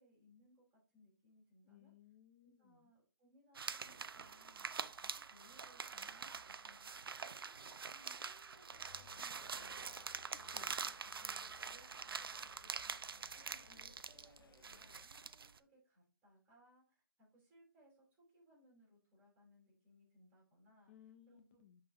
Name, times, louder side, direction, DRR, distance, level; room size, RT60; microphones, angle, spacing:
voice 1, 0.0-1.9 2.4-10.0 10.3-10.6 11.2-20.9 21.3-21.6, equal, 15° right, -3 dB, 3.8 m, -69 dB
voice 2, 1.7-2.9 10.5-10.9 20.9-21.8, left 10 dB, 30° left, 6 dB, 0.5 m, -63 dB
sound 1, 3.5-15.6, right 5 dB, 80° right, 0.5 m, -46 dB
sound 2, 8.7-15.1, left 5 dB, 75° left, 0.6 m, -63 dB
10.5 x 4.0 x 2.7 m, 0.37 s
hypercardioid pair, 150°, 12 cm